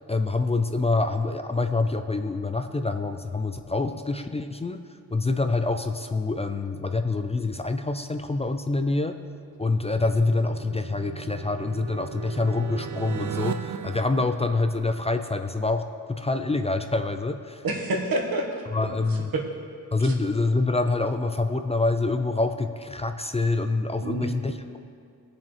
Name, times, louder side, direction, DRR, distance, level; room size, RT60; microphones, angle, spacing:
voice 1, 0.1-4.8 5.1-9.1 9.6-15.8 16.1-17.6 18.7-19.3 19.9-24.8, left 3 dB, 20° left, 7 dB, 0.4 m, -26 dB
sound 1, 9.4-15.2, right 7 dB, 55° right, 0.6 m, -37 dB
voice 2, 17.6-19.4 20.0-20.1 24.0-24.3, right 2 dB, 85° right, 0 dB, 1.5 m, -29 dB
20.5 x 7.1 x 3.2 m, 2.3 s
wide cardioid pair, 145°, 35 cm